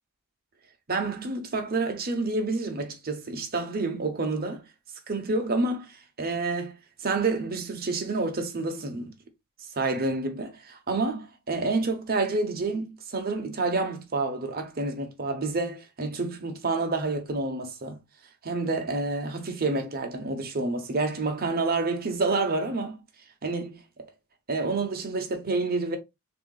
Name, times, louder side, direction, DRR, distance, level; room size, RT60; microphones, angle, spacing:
voice 1, 0.9-4.7 5.1-6.7 7.0-9.1 9.6-18.0 18.4-23.0 23.4-23.8 24.5-26.0, right 3 dB, 45° right, 1.0 m, -28 dB
6.8 x 2.8 x 2.4 m
head